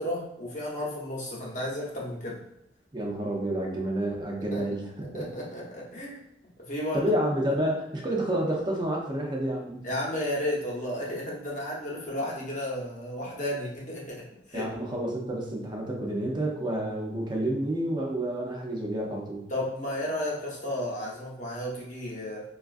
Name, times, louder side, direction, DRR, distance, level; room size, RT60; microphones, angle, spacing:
voice 1, 0.0-2.4 4.5-4.6 5.1-6.2 6.6-7.1 9.8-14.7 19.5-22.4, left 1 dB, 40° left, -4 dB, 0.9 m, -33 dB
voice 2, 2.9-5.2 6.9-9.9 14.5-19.5, right 1 dB, 25° right, -1 dB, 0.6 m, -29 dB
4.3 x 2.4 x 2.5 m, 0.81 s
head